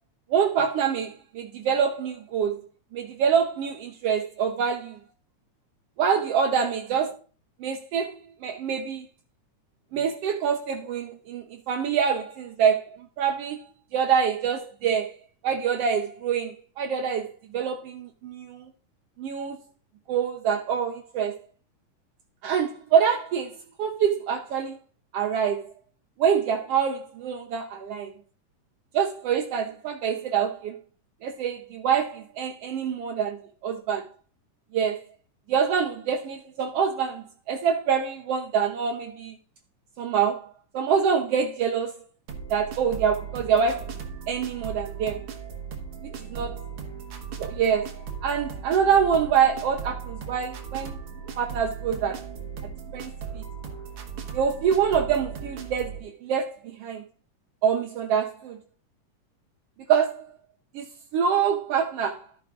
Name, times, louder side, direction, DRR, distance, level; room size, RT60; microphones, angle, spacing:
voice 1, 0.3-2.6 2.9-5.0 6.0-7.1 7.6-9.1 9.9-13.6 13.9-15.1 15.4-18.7 19.2-19.6 20.1-21.4 22.4-24.8 25.1-25.7 26.2-28.1 28.9-30.8 31.2-34.1 34.7-35.0 35.5-39.4 40.0-42.0 42.5-43.9 44.3-45.2 46.3-46.6 47.4-51.0 51.4-52.2 52.6-53.4 54.3-57.0 57.6-58.6 59.9-60.3 60.7-60.9 61.1-62.3, right 7 dB, 80° right, 1.3 m, -26 dB
sound 1, 42.3-56.0, right 6 dB, 55° right, 1.8 m, -37 dB
12.5 x 9.8 x 2.4 m
omnidirectional pair, 3.6 m